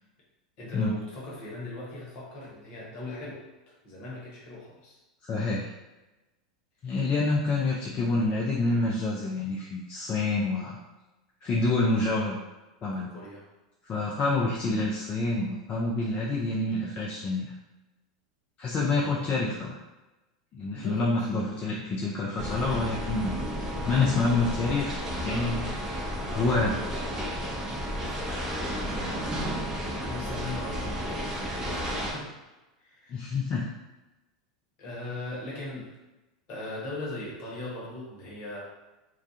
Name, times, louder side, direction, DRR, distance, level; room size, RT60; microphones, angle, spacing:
voice 1, 0.6-5.0 6.9-7.1 12.9-13.4 18.9-19.4 20.7-21.3 29.8-32.3 32.8-33.3 34.8-35.9 36.5-38.6, left 2 dB, 50° left, -4 dB, 1.0 m, -39 dB
voice 2, 5.2-5.7 6.8-10.8 11.4-12.4 12.8-13.1 13.9-17.5 18.6-19.7 20.5-23.3 23.8-25.7 26.3-26.8 33.1-33.7, left 3 dB, 35° left, -4 dB, 0.4 m, -27 dB
sound 1, 22.4-32.1, equal, 15° right, 0.7 m, -32 dB
2.3 x 2.3 x 2.7 m, 1.1 s
hypercardioid pair, 100°, 4 cm